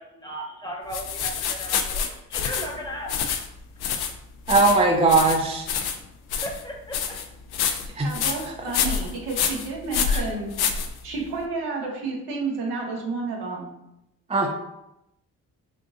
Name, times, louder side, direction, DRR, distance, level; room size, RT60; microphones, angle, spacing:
voice 1, 0.0-3.1 5.2-5.4 6.4-7.2, equal, 10° left, -1 dB, 0.9 m, -36 dB
sound 1, 0.9-11.4, left 7 dB, 70° left, 0.5 m, -28 dB
voice 2, 4.5-5.7 8.0-8.1 8.4-8.5 10.1-10.2 14.3-14.5, right 3 dB, 15° right, 0 dB, 0.4 m, -19 dB
voice 3, 8.0-10.5 11.0-13.8 14.4-14.5, right 3 dB, 85° right, -1 dB, 0.8 m, -31 dB
3.5 x 2.5 x 2.5 m, 0.86 s
supercardioid pair, 50°, 39 cm